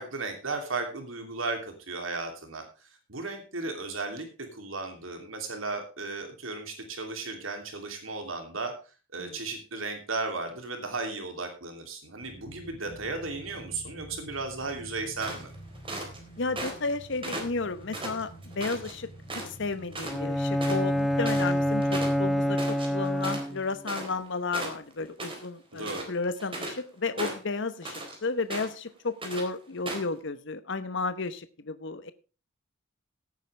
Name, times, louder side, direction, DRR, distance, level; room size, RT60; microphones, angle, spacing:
voice 1, 0.0-8.7 9.1-15.5 21.2-21.5 25.7-26.1, right 3 dB, 75° right, 5 dB, 2.9 m, -35 dB
sound 1, 12.2-22.6, right 1 dB, 35° left, 3.1 m, -48 dB
sound 2, 15.2-16.2 16.6-16.9 17.2-18.9 19.3-19.6 19.9-20.2 20.4-24.3 24.5-25.5 25.8-26.8 27.2-28.2 28.5-28.9 29.2-29.5 29.9-30.1, right 2 dB, 25° right, 4.0 m, -37 dB
voice 2, 16.4-19.1 19.4-32.1, left 3 dB, 65° left, 12 dB, 1.0 m, -33 dB
Bowed string instrument, 20.1-23.8, equal, ahead, 1.2 m, -27 dB
17.5 x 9.2 x 3.3 m, 0.33 s
head